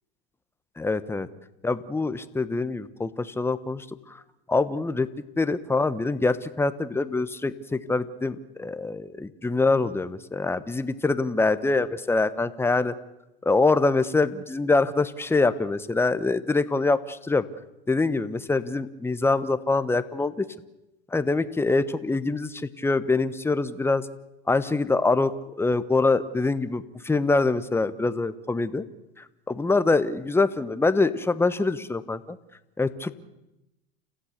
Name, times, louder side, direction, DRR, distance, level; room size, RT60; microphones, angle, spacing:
voice 1, 0.8-1.3 1.6-4.2 4.5-5.1 5.4-12.9 13.4-17.4 17.9-20.5 21.1-24.0 24.5-28.8 29.2-32.4 32.8-33.1, left 3 dB, 10° left, 13 dB, 1.1 m, -24 dB
29.5 x 15.5 x 6.7 m, 0.95 s
hypercardioid pair, 100°, 30 cm